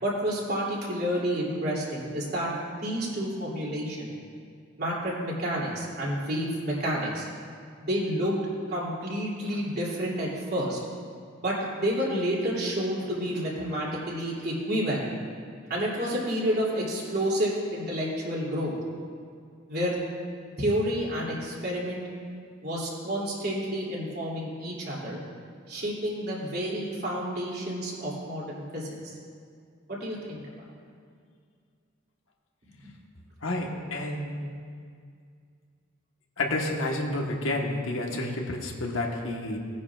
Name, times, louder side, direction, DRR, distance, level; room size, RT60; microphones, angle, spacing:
voice 1, 0.0-2.5 2.8-4.1 4.8-7.3 7.8-8.4 8.7-10.8 11.4-15.1 15.7-18.7 19.7-20.0 20.6-22.0 22.6-25.2 25.7-29.2 29.9-30.4 32.8-32.9, equal, 50° right, -5 dB, 2.8 m, -29 dB
voice 2, 33.4-34.4 36.4-39.6, left 2 dB, 75° left, 0 dB, 1.3 m, -30 dB
18.0 x 9.7 x 2.4 m, 2.2 s
head